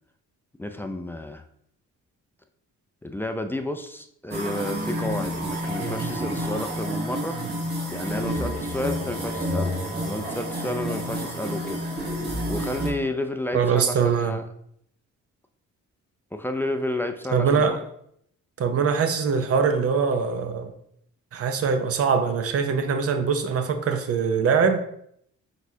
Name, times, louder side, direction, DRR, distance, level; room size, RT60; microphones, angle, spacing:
voice 1, 0.6-1.4 3.0-7.4 7.9-9.8 10.1-11.8 12.5-14.4 16.3-17.8, left 1 dB, 5° left, 6 dB, 0.3 m, -31 dB
sound 1, 4.3-12.9, equal, 35° right, 1.3 m, -29 dB
voice 2, 13.5-14.4 17.3-17.8 18.6-20.7 21.3-24.8, right 6 dB, 50° right, 8 dB, 0.6 m, -22 dB
4.7 x 4.1 x 2.7 m, 0.70 s
cardioid pair, 90°, 30 cm